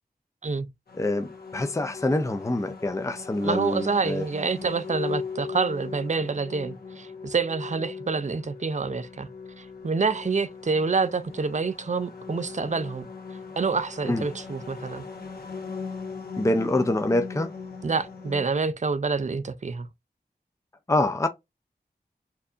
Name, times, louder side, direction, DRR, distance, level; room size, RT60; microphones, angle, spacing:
sound 1, 0.9-18.4, left 5 dB, 70° left, 1.2 m, -39 dB
voice 1, 1.0-4.2 14.0-14.3 16.4-17.5 20.9-21.3, left 2 dB, 20° left, 0.6 m, -25 dB
voice 2, 3.4-9.3 9.6-13.1 13.6-15.1 17.8-19.9, right 4 dB, 45° right, 0.5 m, -27 dB
4.4 x 2.7 x 2.4 m
cardioid pair, 40°, 17 cm